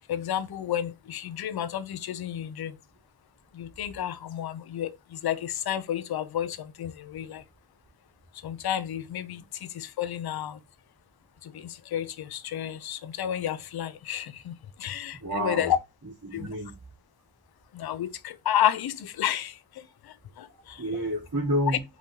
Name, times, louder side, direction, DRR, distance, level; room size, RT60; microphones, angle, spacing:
voice 1, 0.1-2.7 3.5-7.4 8.4-10.6 11.4-14.5 14.8-15.8 16.3-16.5 17.7-19.5 20.4-20.8, left 10 dB, 85° left, 0.6 m, -31 dB
voice 2, 15.1-15.7 16.0-16.8 20.8-21.8, equal, 55° right, 2.9 m, -30 dB
5.5 x 3.0 x 2.8 m
cardioid pair, 55°, 37 cm